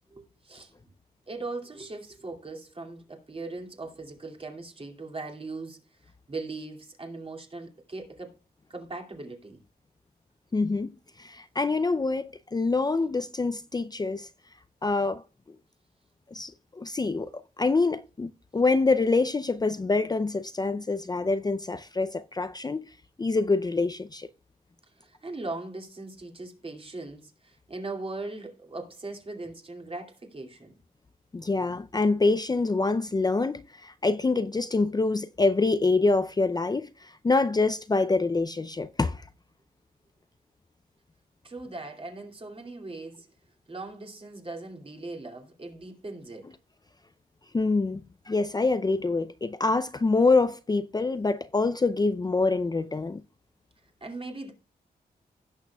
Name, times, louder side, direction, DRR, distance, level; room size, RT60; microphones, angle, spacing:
voice 1, 0.1-0.7 1.3-5.8 6.3-8.3 8.7-9.6 25.0-30.8 41.4-43.3 43.7-46.5 54.0-54.5, right 3 dB, 35° right, 2.5 m, -39 dB
voice 2, 10.5-10.9 11.2-14.3 14.8-15.2 16.3-22.9 23.2-24.3 31.3-39.2 47.5-53.2, left 3 dB, 25° left, 0.5 m, -26 dB
16.5 x 6.5 x 2.3 m
cardioid pair, 75°, 16 cm